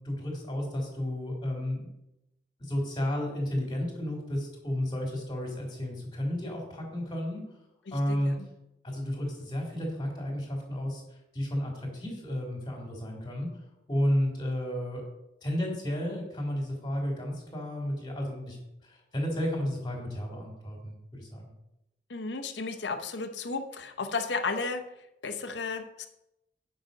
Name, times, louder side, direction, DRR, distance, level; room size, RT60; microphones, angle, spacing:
voice 1, 0.0-1.9 2.6-7.4 7.9-8.3 8.8-11.0 11.3-13.5 13.9-15.0 15.4-18.6 18.8-21.4, equal, 25° left, 1 dB, 2.6 m, -32 dB
voice 2, 7.9-8.5 22.1-24.8 25.2-26.1, left 4 dB, 85° left, 7 dB, 0.9 m, -34 dB
9.0 x 5.9 x 5.2 m, 0.87 s
head